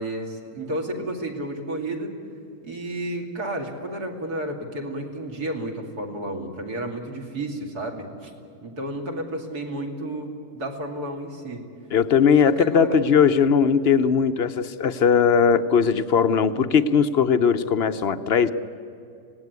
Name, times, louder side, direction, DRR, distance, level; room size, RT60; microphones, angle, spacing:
voice 1, 0.0-2.1 2.6-8.3 8.6-11.6 12.4-13.0, right 1 dB, 65° right, 2 dB, 3.2 m, -31 dB
voice 2, 11.9-18.5, left 6 dB, 50° left, 10 dB, 0.8 m, -19 dB
25.5 x 18.5 x 9.5 m, 2.7 s
omnidirectional pair, 1.7 m